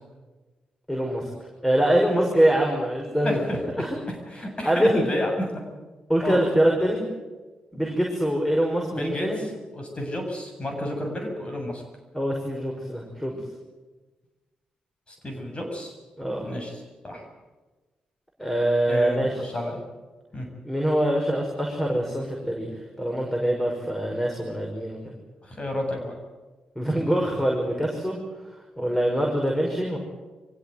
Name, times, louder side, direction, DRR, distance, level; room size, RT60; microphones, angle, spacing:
voice 1, 0.9-1.3 1.6-3.4 3.8-4.0 4.6-5.1 6.1-7.1 7.7-9.4 12.1-13.4 16.2-16.5 18.4-19.3 20.7-22.7 23.0-25.2 26.8-28.2 28.8-30.0, right 1 dB, 5° left, 0 dB, 5.9 m, -24 dB
voice 2, 3.2-3.6 4.3-5.5 6.2-6.4 8.9-9.3 9.7-11.8 15.1-15.9 16.4-16.8 17.0-17.3 18.9-19.8 20.3-20.5 25.4-26.1, left 1 dB, 35° left, 2 dB, 7.6 m, -30 dB
24.5 x 16.5 x 9.6 m, 1.3 s
hypercardioid pair, 40°, 3 cm